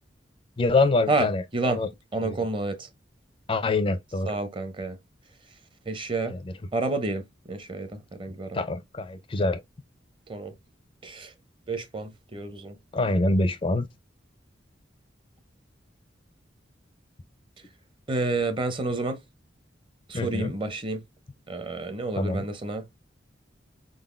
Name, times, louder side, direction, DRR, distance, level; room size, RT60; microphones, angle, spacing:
voice 1, 0.6-1.9 2.2-2.4 3.5-4.4 6.3-6.4 8.5-9.6 12.9-13.9 20.1-20.5 22.2-22.4, left 2 dB, 30° left, 0.4 m, -25 dB
voice 2, 2.1-2.9 4.3-5.0 5.9-6.4 6.7-8.6 10.3-10.5 11.0-11.3 11.7-12.8 18.1-19.2 20.1-21.0 21.5-22.9, right 2 dB, 25° right, 0.6 m, -29 dB
4.2 x 3.9 x 2.5 m
head